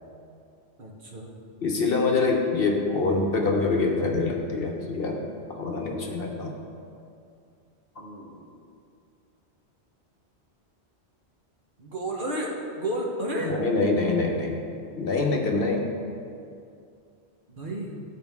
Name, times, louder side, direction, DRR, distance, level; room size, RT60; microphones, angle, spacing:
voice 1, 0.8-1.3 2.8-3.2 8.0-8.5 11.8-13.6 17.5-18.0, right 1 dB, 50° right, -2 dB, 1.2 m, -32 dB
voice 2, 1.6-5.2 5.6-6.5 13.5-14.6 15.0-15.8, left 3 dB, 60° left, 1 dB, 1.0 m, -25 dB
12.0 x 4.9 x 3.5 m, 2.4 s
omnidirectional pair, 1.1 m